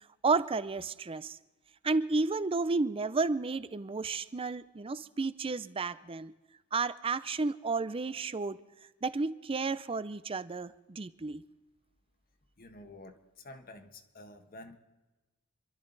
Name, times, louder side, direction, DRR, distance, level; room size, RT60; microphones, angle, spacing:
voice 1, 0.2-1.4 1.8-6.3 6.7-8.6 9.0-11.4, right 3 dB, 25° right, 15 dB, 0.5 m, -32 dB
voice 2, 12.6-14.8, left 2 dB, 40° left, 6 dB, 1.3 m, -50 dB
27.0 x 12.5 x 4.0 m, 1.1 s
head